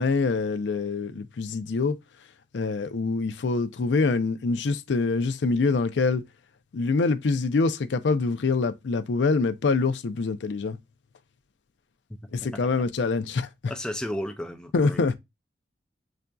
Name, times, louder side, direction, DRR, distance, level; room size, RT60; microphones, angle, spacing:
voice 1, 0.0-2.0 2.5-6.2 6.7-10.8 12.3-13.5 14.7-15.1, left 4 dB, 80° left, 0.5 m, -25 dB
voice 2, 13.7-15.2, left 1 dB, 5° left, 0.4 m, -33 dB
5.5 x 2.5 x 2.3 m
head